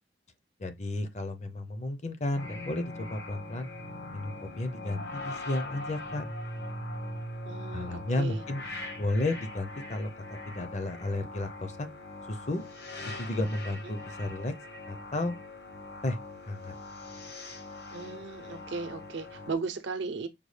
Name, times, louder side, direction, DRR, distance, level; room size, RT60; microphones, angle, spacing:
voice 1, 0.6-3.7 4.1-6.2 7.7-11.9 12.3-12.6 13.2-14.5 14.9-15.3 16.0-16.2 16.5-16.7, left 2 dB, 35° left, 0.6 m, -33 dB
sound 1, 2.3-19.5, left 2 dB, 55° left, 0.9 m, -42 dB
voice 2, 7.4-8.4 13.8-14.0 17.9-20.3, right 4 dB, 75° right, 0.6 m, -36 dB
5.2 x 2.2 x 3.2 m
head